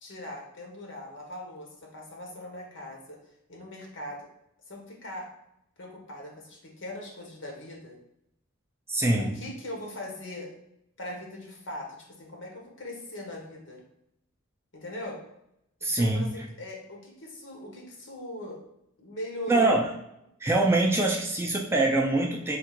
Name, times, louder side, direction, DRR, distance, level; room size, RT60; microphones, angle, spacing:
voice 1, 0.0-3.2 3.5-4.3 4.7-5.3 5.8-8.0 9.2-10.5 11.0-13.8 14.7-15.2 15.8-18.6 19.0-19.7, left 1 dB, 60° left, 0 dB, 1.1 m, -40 dB
voice 2, 8.9-9.4 15.8-16.5 19.5-19.9 20.4-22.6, right 2 dB, 10° right, 0 dB, 0.4 m, -24 dB
3.5 x 2.4 x 4.5 m, 0.80 s
head